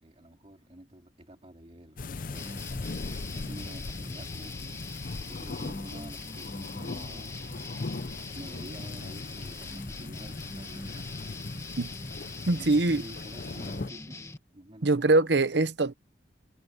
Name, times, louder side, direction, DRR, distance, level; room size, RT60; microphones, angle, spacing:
voice 1, 0.0-2.6 3.2-4.8 5.3-7.3 8.3-11.6 12.5-14.9, right 1 dB, 35° right, 2.6 m, -49 dB
sound 1, 2.0-13.9, left 3 dB, 50° left, 0.6 m, -39 dB
sound 2, 2.3-14.4, left 2 dB, 15° left, 1.4 m, -42 dB
voice 2, 12.5-13.0 14.8-15.9, right 2 dB, 65° right, 0.9 m, -23 dB
head